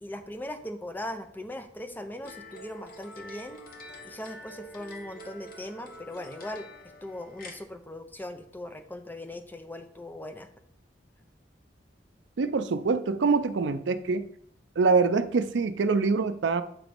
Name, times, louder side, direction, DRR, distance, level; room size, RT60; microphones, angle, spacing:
voice 1, 0.0-3.6 4.0-6.7 7.0-10.5, left 1 dB, 10° left, 8 dB, 0.5 m, -39 dB
sound 1, 2.2-7.6, left 1 dB, 55° left, 1.2 m, -46 dB
voice 2, 12.4-14.2 14.8-16.6, right 4 dB, 80° right, 11 dB, 0.5 m, -24 dB
7.4 x 3.0 x 5.1 m, 0.67 s
head